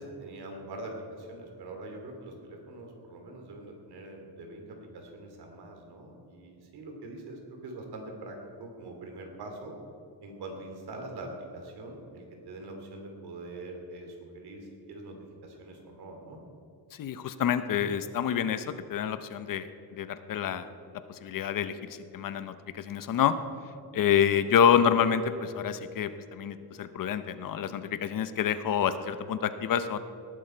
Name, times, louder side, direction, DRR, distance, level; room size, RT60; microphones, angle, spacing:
voice 1, 0.0-9.7 10.2-15.2 15.4-16.4, right 2 dB, 75° right, 2 dB, 3.0 m, -43 dB
voice 2, 16.9-19.7 19.9-20.7 21.1-23.4 23.9-30.0, left 8 dB, 55° left, 12 dB, 0.8 m, -27 dB
19.0 x 11.5 x 4.5 m, 2.6 s
cardioid pair, 165°, 39 cm